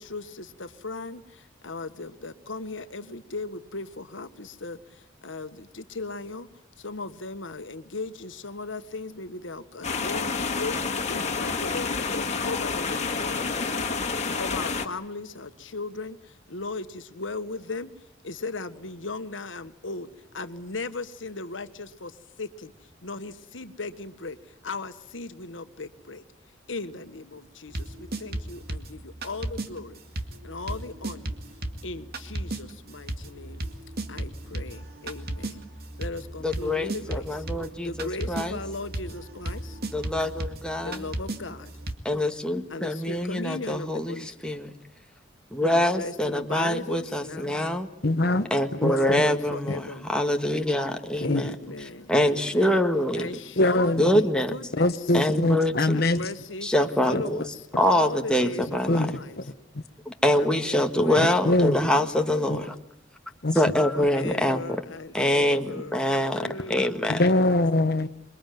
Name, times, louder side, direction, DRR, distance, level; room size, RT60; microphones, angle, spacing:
voice 1, 0.0-6.5 6.8-17.9 18.2-22.7 23.0-26.2 26.7-30.0 30.4-31.3 31.8-33.6 34.1-35.6 36.0-37.4 37.8-39.8 40.8-41.7 42.7-44.3 46.0-47.6 48.8-50.1 51.2-52.8 53.2-55.1 55.9-59.4 60.4-62.7 63.9-67.5, left 3 dB, 75° left, 10 dB, 1.6 m, -37 dB
sound 1, 9.8-14.9, left 4 dB, 35° left, 2.2 m, -29 dB
sound 2, 27.7-29.7 30.2-41.9, right 1 dB, 55° right, 2.1 m, -35 dB
voice 2, 36.4-38.6 39.9-41.0 42.0-44.7 45.5-47.9 48.5-51.5 52.1-53.3 54.0-54.5 55.1-56.0 56.6-57.4 57.8-59.1 60.0-62.7 63.5-64.8 65.1-67.2, left 1 dB, 5° left, 4 dB, 1.6 m, -25 dB
voice 3, 48.0-48.5 48.8-49.2 51.2-51.4 53.6-54.1 54.8-56.2 57.1-57.2 58.9-59.4 61.2-61.8 62.5-62.6 63.4-63.6 67.1-68.1, left 2 dB, 55° left, 9 dB, 1.2 m, -23 dB
27.5 x 22.5 x 9.3 m, 0.76 s
head